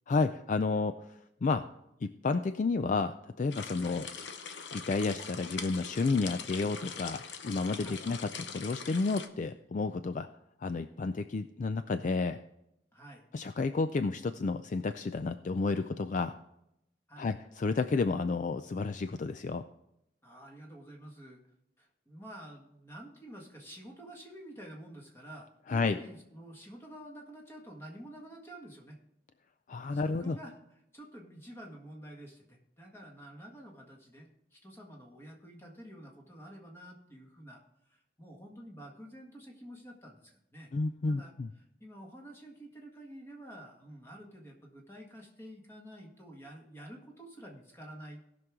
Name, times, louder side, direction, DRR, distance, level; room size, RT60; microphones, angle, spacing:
voice 1, 0.1-1.0 1.4-1.6 2.0-4.1 4.7-10.3 10.6-12.4 13.3-16.4 17.2-19.6 25.7-26.0 29.7-30.4 40.7-41.5, left 3 dB, 45° left, 10 dB, 0.4 m, -31 dB
sound 1, 3.5-9.3, left 6 dB, 80° left, 0.8 m, -42 dB
voice 2, 12.9-13.3 17.1-17.3 20.2-21.4 21.8-29.0 29.9-30.5 30.9-37.6 37.9-40.7 41.0-48.2, right 1 dB, 15° left, 0 dB, 1.7 m, -49 dB
17.5 x 6.2 x 3.6 m, 0.82 s
head